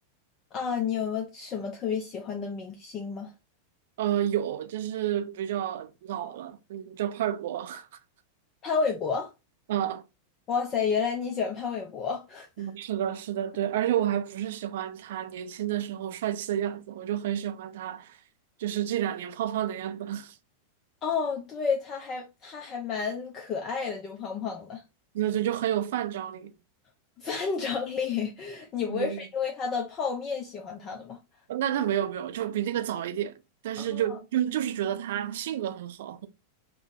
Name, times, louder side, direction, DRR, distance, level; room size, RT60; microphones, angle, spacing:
voice 1, 0.5-3.3 8.6-9.3 10.5-12.7 21.0-24.8 27.2-31.2 33.8-34.2, left 6 dB, 30° left, 0.5 m, -31 dB
voice 2, 4.0-7.9 9.7-10.0 12.6-18.2 18.6-20.4 25.1-26.5 28.9-29.3 31.5-33.4 33.6-36.3, right 11 dB, 55° right, 0.4 m, -30 dB
3.5 x 2.2 x 3.7 m
figure-of-eight pair, 90°, 0 cm